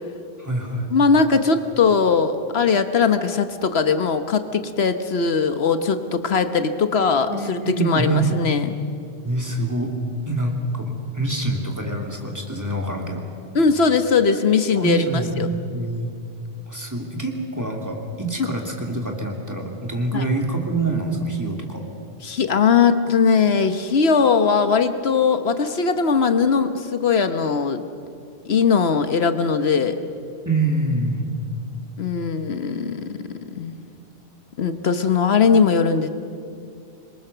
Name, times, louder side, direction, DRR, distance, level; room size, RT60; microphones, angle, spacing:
voice 1, 0.4-0.9 7.3-8.3 9.2-9.9 10.3-13.2 14.8-16.1 16.7-21.8 30.4-31.3, right 2 dB, 15° right, 1 dB, 2.8 m, -25 dB
voice 2, 0.9-8.8 13.5-15.5 18.4-18.5 20.1-20.2 22.2-27.8 28.5-30.0 32.0-33.2 33.5-33.9 34.6-36.1, left 5 dB, 75° left, 9 dB, 1.3 m, -20 dB
26.0 x 22.0 x 6.8 m, 2.5 s
omnidirectional pair, 1.1 m